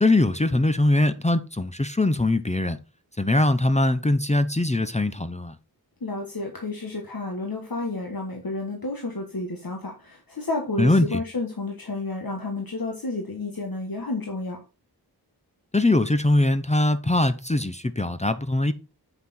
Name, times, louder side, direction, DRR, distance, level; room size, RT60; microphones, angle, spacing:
voice 1, 0.0-2.8 3.2-5.6 10.8-11.2 15.7-18.7, left 2 dB, 20° left, 0.7 m, -22 dB
voice 2, 6.0-14.6, left 2 dB, 65° left, 1.5 m, -31 dB
7.9 x 5.8 x 4.2 m
wide cardioid pair, 55°, 38 cm